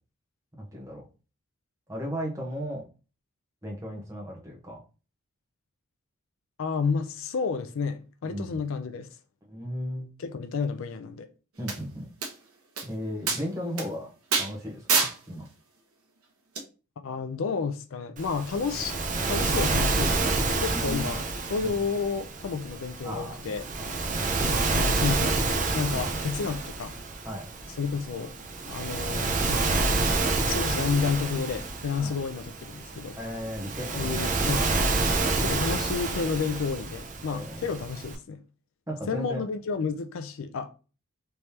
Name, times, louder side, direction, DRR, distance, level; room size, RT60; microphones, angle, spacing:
voice 1, 0.6-1.0 1.9-2.8 3.6-4.8 8.2-8.6 9.5-10.1 11.6-12.1 12.9-15.5 20.7-21.1 21.6-21.7 23.0-23.4 23.8-24.2 25.9-26.2 27.2-27.5 32.0-32.2 33.2-34.2 37.3-37.7 38.9-39.4, equal, 15° right, 1.0 m, -36 dB
voice 2, 6.6-9.1 10.2-11.3 17.0-19.0 19.3-23.7 24.3-25.5 25.7-27.0 27.8-28.3 28.7-30.1 30.5-33.2 33.9-34.7 35.4-38.4 39.1-40.7, left 5 dB, 65° left, 0.4 m, -31 dB
sound 1, 11.7-11.8 12.2-12.3 12.8-12.9 13.3-13.4 13.8-13.9 14.3-14.5 14.9-15.1 16.6-16.7, right 4 dB, 75° right, 1.0 m, -25 dB
Waves surf, 18.2-38.2, right 3 dB, 35° right, 0.5 m, -28 dB
3.4 x 3.1 x 2.8 m
head